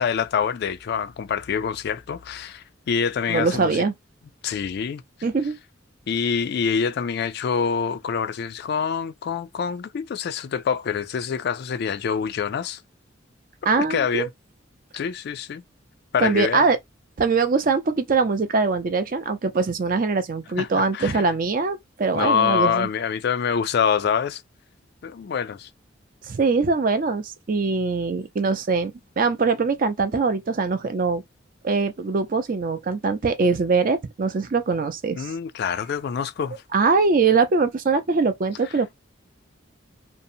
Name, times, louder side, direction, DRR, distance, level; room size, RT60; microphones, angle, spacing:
voice 1, 0.0-3.8 4.4-5.0 6.1-12.8 13.9-14.3 14.9-15.6 16.1-16.6 20.6-21.3 22.1-24.4 25.0-25.7 35.2-36.6, left 6 dB, 55° left, 0.3 m, -25 dB
voice 2, 3.3-3.9 5.2-5.5 13.7-14.3 16.2-16.8 17.2-22.9 26.2-31.2 31.6-35.3 36.7-38.9, right 4 dB, 45° right, 0.4 m, -22 dB
2.6 x 2.0 x 2.6 m
head